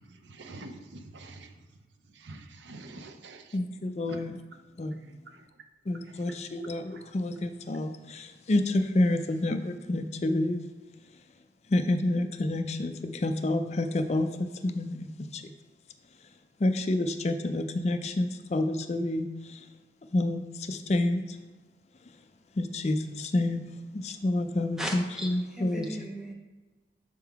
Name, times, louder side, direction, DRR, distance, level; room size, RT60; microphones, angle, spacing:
voice 1, 0.3-1.5 2.2-3.4 4.1-4.2, right 2 dB, 90° right, 6 dB, 0.6 m, -45 dB
voice 2, 3.5-4.4 4.8-4.9 5.9-10.6 11.7-15.4 16.6-19.6 20.1-21.2 22.6-23.7 23.9-25.9, left 1 dB, 40° left, 7 dB, 0.4 m, -29 dB
voice 3, 24.8-26.3, equal, 5° right, 0 dB, 0.7 m, -37 dB
6.7 x 3.7 x 4.6 m, 1.2 s
head